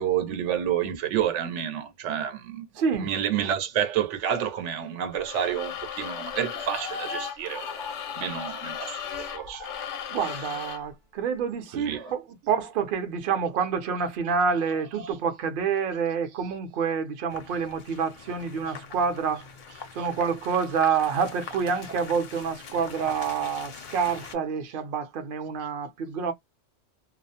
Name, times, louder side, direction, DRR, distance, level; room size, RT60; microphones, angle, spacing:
voice 1, 0.0-2.7 3.0-7.9 8.2-9.7 11.7-12.1 15.0-15.1 20.0-20.1, right 9 dB, 85° right, 0.9 m, -29 dB
voice 2, 2.8-3.1 10.1-19.5 19.9-26.3, right 6 dB, 55° right, 0.7 m, -27 dB
sound 1, 5.1-10.9, left 9 dB, 80° left, 0.9 m, -37 dB
sound 2, 6.6-8.5 9.3-10.2 11.9-12.1, left 3 dB, 5° left, 0.4 m, -40 dB
sound 3, 17.3-24.4, left 6 dB, 55° left, 0.5 m, -43 dB
2.3 x 2.0 x 2.7 m
omnidirectional pair, 1.2 m